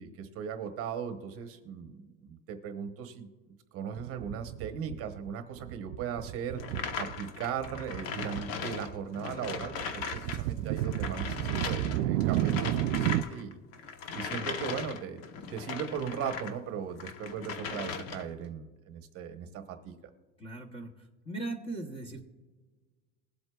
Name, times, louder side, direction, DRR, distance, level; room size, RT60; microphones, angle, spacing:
voice 1, 0.0-3.3 3.7-6.6 7.0-13.6 14.1-15.2 15.5-20.0, right 7 dB, 30° right, 7 dB, 0.9 m, -38 dB
sound 1, 4.0-5.3 5.6-7.2 7.5-8.5 8.7-13.2, right 13 dB, 75° right, 0.5 m, -32 dB
sound 2, 6.6-10.4 10.7-16.6 17.0-18.4, left 6 dB, 60° left, 1.1 m, -39 dB
voice 2, 20.4-20.9 21.2-22.3, right 2 dB, 15° left, 4 dB, 0.7 m, -39 dB
21.0 x 7.9 x 2.3 m, 1.4 s
supercardioid pair, 160°, 44 cm